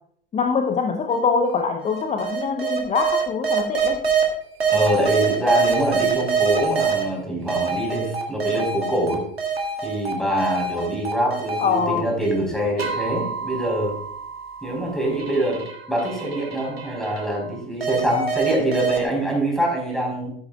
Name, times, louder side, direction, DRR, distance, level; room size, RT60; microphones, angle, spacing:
voice 1, 0.3-4.0 11.6-12.1, left 5 dB, 20° left, 5 dB, 0.8 m, -23 dB
sound 1, 1.1-1.2 1.8-4.2 4.6-7.0 7.5-10.1 10.4-12.4 12.8-17.4 17.8-19.0, right 6 dB, 85° right, 1.8 m, -25 dB
voice 2, 4.7-9.2 9.8-13.9 14.6-15.6 15.9-20.3, right 1 dB, ahead, -1 dB, 4.5 m, -24 dB
14.5 x 8.4 x 2.4 m, 0.65 s
figure-of-eight pair, 85°, 30 cm